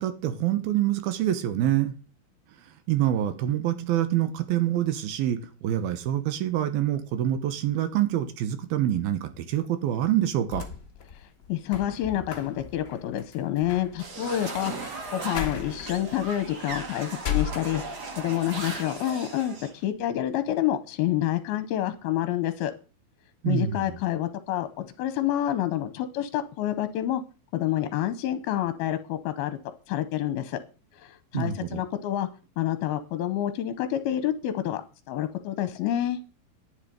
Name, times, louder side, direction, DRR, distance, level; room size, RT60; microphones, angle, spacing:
voice 1, 0.0-1.9 2.9-10.7 23.4-24.0 31.3-31.8, right 12 dB, 75° right, 2.8 m, -26 dB
sound 1, 10.2-18.2 18.6-19.4, left 9 dB, 55° left, 1.2 m, -37 dB
voice 2, 11.5-17.8 18.2-22.7 23.5-27.2 27.5-29.6 29.9-30.6 30.9-32.3 32.6-34.8 35.1-36.2, left 12 dB, 80° left, 2.6 m, -28 dB
sound 2, 14.0-19.7, right 3 dB, 50° right, 1.2 m, -37 dB
10.5 x 9.5 x 5.1 m
omnidirectional pair, 4.6 m